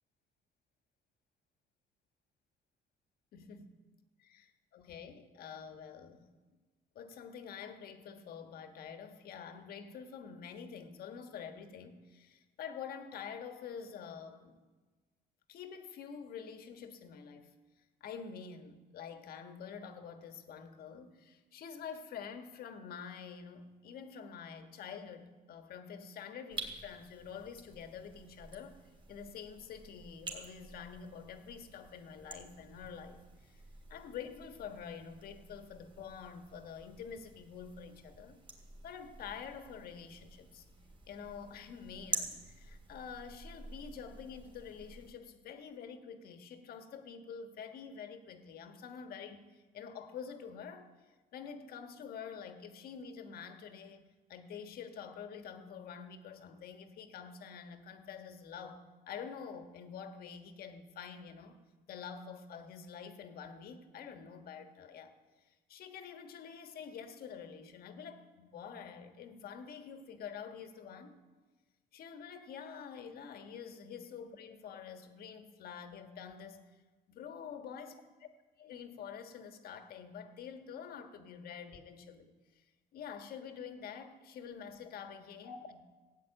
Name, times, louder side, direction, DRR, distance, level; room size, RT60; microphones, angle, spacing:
voice 1, 3.3-3.8 4.2-6.3 6.9-14.6 15.5-17.5 18.0-28.8 29.1-33.6 33.9-38.4 38.8-40.6 41.1-50.9 51.3-61.6 61.9-65.1 65.4-71.2 71.9-76.5 77.1-78.3 78.6-82.6 82.9-85.8, left 7 dB, 65° left, 7 dB, 1.4 m, -47 dB
sound 1, 26.5-45.1, right 3 dB, 30° right, 3.1 m, -48 dB
15.0 x 8.1 x 8.9 m, 1.3 s
cardioid pair, 110°, 17 cm